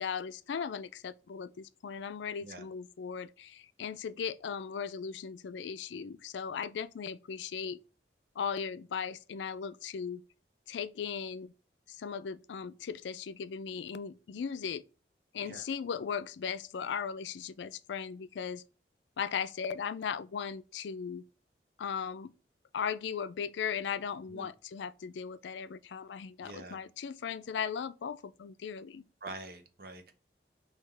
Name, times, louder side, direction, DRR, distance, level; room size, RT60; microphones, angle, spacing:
voice 1, 0.0-7.8 8.4-10.2 10.7-11.5 11.9-14.8 15.3-18.6 19.2-21.2 21.8-22.3 22.7-29.0, left 7 dB, 90° left, 0.4 m, -37 dB
voice 2, 26.4-26.8 29.2-30.1, right 2 dB, 55° right, 0.8 m, -45 dB
5.6 x 2.9 x 3.2 m
head